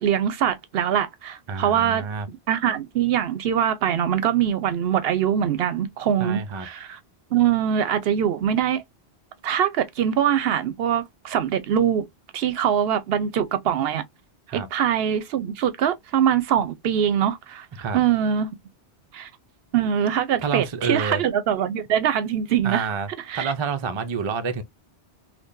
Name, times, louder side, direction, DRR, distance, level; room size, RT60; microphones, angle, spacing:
voice 1, 0.0-2.0 2.5-7.0 7.3-8.8 9.4-12.0 12.3-14.0 14.5-17.7 17.9-18.5 19.1-19.3 19.7-22.9 23.3-23.5, right 9 dB, 70° right, 0.7 m, -23 dB
voice 2, 1.5-2.3 6.2-6.7 14.5-14.7 17.8-18.0 20.4-21.2 22.6-23.1 23.3-24.6, right 5 dB, 45° right, 0.4 m, -28 dB
3.7 x 2.6 x 2.5 m
omnidirectional pair, 1.1 m